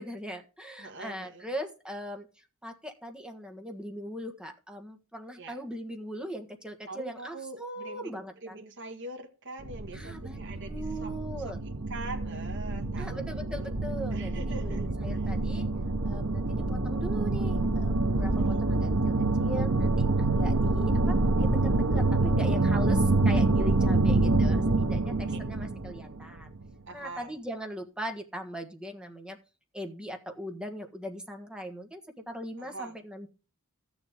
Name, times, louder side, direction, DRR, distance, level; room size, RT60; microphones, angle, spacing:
voice 1, 0.0-8.5 9.9-11.6 13.0-15.7 16.0-26.5 26.9-29.4 29.7-33.3, equal, 5° right, 1.5 m, -40 dB
voice 2, 0.8-1.4 5.4-5.6 6.9-11.1 11.4-11.6 11.9-13.8 14.1-14.8 15.1-15.2 18.4-18.7 25.3-25.4 26.9-27.3 32.6-33.0, right 2 dB, 60° right, 1.7 m, -43 dB
sound 1, 9.6-26.6, right 2 dB, 85° right, 1.2 m, -26 dB
14.5 x 7.1 x 3.6 m
head